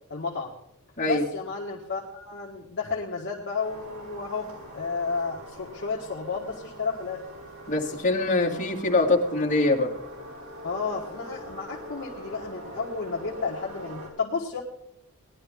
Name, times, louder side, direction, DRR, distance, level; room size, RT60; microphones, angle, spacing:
voice 1, 0.1-0.5 1.1-7.2 10.6-14.6, left 4 dB, 55° left, -3 dB, 1.5 m, -32 dB
sound 1, 3.6-14.1, equal, 70° right, 5.9 m, -43 dB
voice 2, 7.7-9.9, left 2 dB, 35° left, -4 dB, 2.4 m, -23 dB
18.5 x 11.5 x 3.7 m, 0.79 s
head